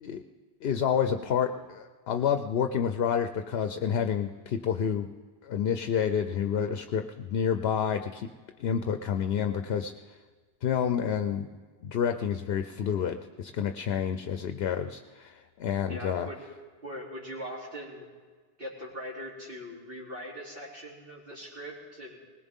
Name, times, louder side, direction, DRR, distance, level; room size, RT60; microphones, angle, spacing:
voice 1, 0.6-5.1 5.4-8.3 8.6-9.9 10.6-11.5 11.8-16.3, left 8 dB, 75° left, 8 dB, 0.8 m, -29 dB
voice 2, 15.9-16.4 16.8-18.1 18.6-22.2, equal, 65° right, -4 dB, 3.3 m, -41 dB
21.0 x 19.0 x 3.6 m, 1.5 s
omnidirectional pair, 1.0 m